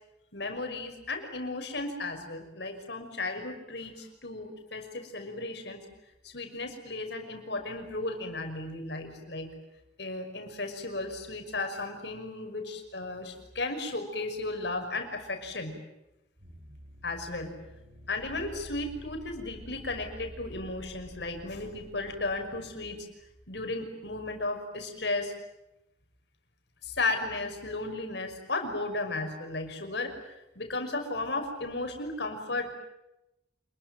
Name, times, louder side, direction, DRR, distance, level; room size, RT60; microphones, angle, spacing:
voice 1, 0.3-5.9 6.2-9.5 10.0-15.8 17.0-17.5 18.1-23.1 23.5-25.3 26.8-30.3 30.6-32.7, left 2 dB, 65° left, 5 dB, 5.8 m, -35 dB
sound 1, 16.4-23.5, equal, 55° right, 5.3 m, -49 dB
28.0 x 21.5 x 9.4 m, 0.90 s
head